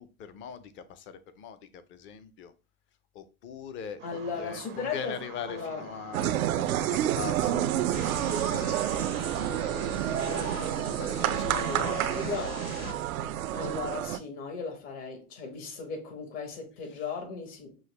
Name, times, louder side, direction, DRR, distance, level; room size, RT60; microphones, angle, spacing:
voice 1, 0.0-2.5 3.1-10.2 10.8-12.1 16.9-17.0, left 7 dB, 30° left, 0.5 m, -42 dB
voice 2, 4.0-5.2 5.5-5.9 10.2-10.9 11.6-12.6 13.5-17.8, left 5 dB, 55° left, 1.7 m, -37 dB
sound 1, 4.0-10.8, right 10 dB, 25° right, 0.4 m, -46 dB
sound 2, 6.1-14.2, right 12 dB, 90° right, 0.6 m, -29 dB
sound 3, 7.9-12.9, left 5 dB, 80° left, 1.3 m, -41 dB
6.2 x 2.2 x 3.2 m
hypercardioid pair, 115°, 41 cm